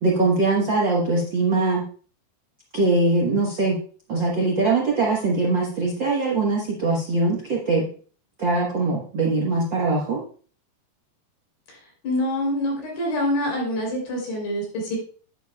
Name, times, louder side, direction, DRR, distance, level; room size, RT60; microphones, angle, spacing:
voice 1, 0.0-1.8 2.7-3.8 4.1-7.9 8.4-10.2, right 3 dB, 70° right, -3 dB, 1.0 m, -22 dB
voice 2, 12.0-15.0, left 1 dB, 70° left, -2 dB, 5.6 m, -25 dB
10.0 x 9.5 x 2.4 m, 0.42 s
omnidirectional pair, 4.5 m